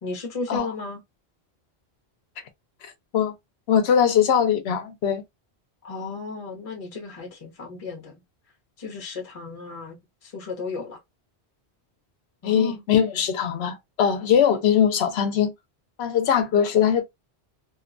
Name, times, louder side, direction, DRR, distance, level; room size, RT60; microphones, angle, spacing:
voice 1, 0.0-1.0 5.8-8.1 8.8-10.0 10.2-11.0 12.4-12.8, left 4 dB, 35° left, 0.8 m, -34 dB
voice 2, 2.8-3.3 3.7-5.2 12.4-15.5 16.0-17.0, left 8 dB, 75° left, 0.8 m, -21 dB
2.6 x 2.2 x 2.4 m
omnidirectional pair, 1.1 m